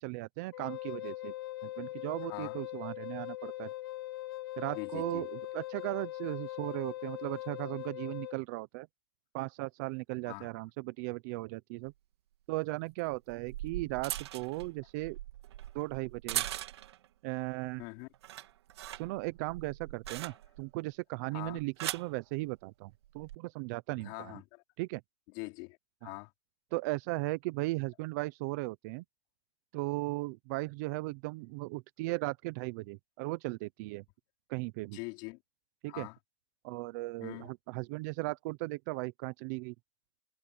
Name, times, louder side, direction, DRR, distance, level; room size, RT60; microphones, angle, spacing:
voice 1, 0.0-1.3 1.6-3.7 4.6-8.9 9.3-11.9 12.5-15.2 15.7-16.4 17.2-17.8 18.9-24.4 24.8-25.0 26.0-26.1 26.7-29.0 29.7-34.0 34.5-35.0 35.8-36.1 36.6-39.7, right 22 dB, 40° right, 0.8 m, -37 dB
Wind instrument woodwind instrument, 0.5-8.4, left 16 dB, 60° left, 0.8 m, -41 dB
voice 2, 2.2-2.6 4.7-5.3 10.2-10.5 17.8-18.1 20.3-20.4 21.3-21.6 23.9-24.6 25.3-26.3 34.9-35.4 35.9-36.2 37.2-37.5, left 26 dB, 40° left, 3.1 m, -43 dB
sound 1, 11.8-11.9 13.1-17.1 17.5-17.8 18.1-20.7 21.5-22.1 23.0-23.4, right 13 dB, 75° right, 2.7 m, -40 dB
supercardioid pair, 160°, 14 cm